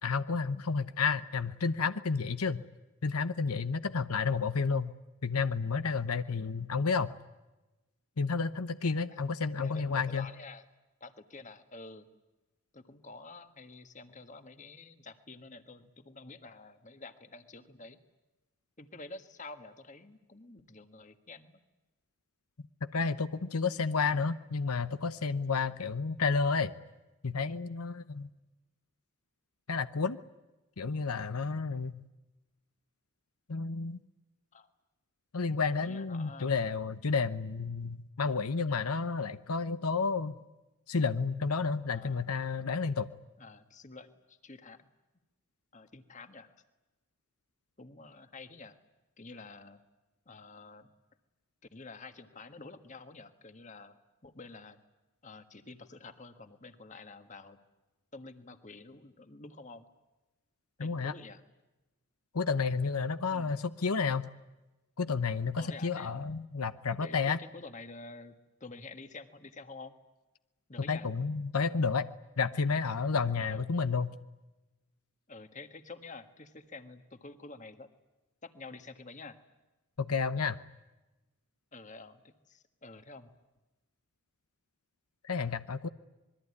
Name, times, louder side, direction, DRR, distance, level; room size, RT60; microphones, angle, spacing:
voice 1, 0.0-2.6 3.0-4.9 5.2-7.1 8.2-10.3 22.9-26.7 27.2-28.3 29.7-30.2 30.8-31.9 33.5-34.0 35.3-40.4 40.9-43.1 60.8-61.1 62.3-64.3 65.0-67.4 70.9-72.1 72.4-74.1 80.0-80.6 85.2-85.9, left 4 dB, 85° left, 12 dB, 0.9 m, -31 dB
voice 2, 9.6-10.7 11.0-12.1 12.7-18.0 18.8-21.6 34.5-34.7 35.8-36.6 41.9-42.3 43.4-44.9 45.7-46.5 47.8-48.8 49.2-49.8 50.2-50.9 51.7-54.8 55.2-57.6 58.1-59.9 60.8-61.4 63.3-63.6 65.6-66.1 67.0-69.9 70.7-71.1 73.4-73.7 75.3-77.9 78.4-79.4 81.7-83.3, left 3 dB, 35° left, 9 dB, 1.6 m, -49 dB
26.0 x 22.0 x 9.7 m, 1.1 s
head